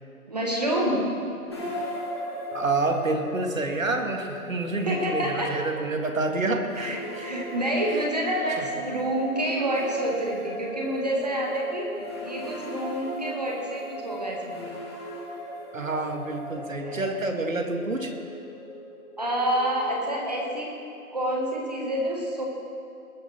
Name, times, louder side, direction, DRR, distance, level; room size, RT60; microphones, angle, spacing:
voice 1, 0.3-1.2 4.8-5.6 6.8-11.9 12.2-14.7 16.8-17.2 19.2-20.7 21.1-22.5, right 1 dB, 25° right, -1 dB, 1.6 m, -28 dB
sound 1, 1.5-20.6, equal, 20° left, 1.6 m, -38 dB
voice 2, 2.5-7.2 7.8-8.1 8.6-8.7 15.7-18.1, right 2 dB, 60° right, 4 dB, 2.1 m, -28 dB
20.0 x 11.0 x 4.4 m, 2.4 s
figure-of-eight pair, 170°, 44 cm